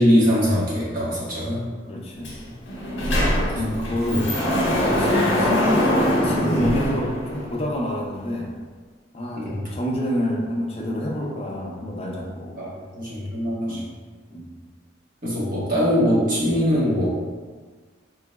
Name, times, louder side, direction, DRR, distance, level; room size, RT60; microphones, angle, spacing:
voice 1, 0.0-1.7 2.4-2.5 3.8-4.2 9.3-9.6 12.6-13.8 15.2-17.2, equal, 45° right, -8 dB, 1.2 m, -22 dB
voice 2, 1.8-2.4 3.2-4.3 4.7-5.9 6.2-8.5 9.1-12.6 13.7-13.8 14.3-14.6, left 1 dB, 30° left, -2 dB, 0.5 m, -28 dB
Sliding door, 2.2-2.4 2.7-7.7, equal, 65° left, 1.0 m, -22 dB
3.8 x 3.1 x 2.3 m, 1.5 s
head